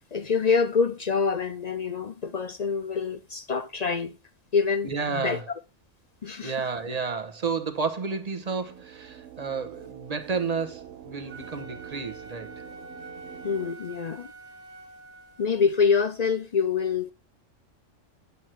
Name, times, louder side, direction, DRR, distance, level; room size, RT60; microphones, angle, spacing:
voice 1, 0.1-4.2 4.5-5.4 6.2-6.5 13.4-14.3 15.4-17.1, left 5 dB, 50° left, 0.5 m, -26 dB
voice 2, 4.8-5.4 6.4-12.6, right 5 dB, 30° right, 1.2 m, -31 dB
sound 1, 8.3-13.7, right 11 dB, 75° right, 1.2 m, -45 dB
Wind instrument woodwind instrument, 11.3-15.6, right 2 dB, 60° right, 1.6 m, -46 dB
8.4 x 8.4 x 4.5 m
omnidirectional pair, 1.3 m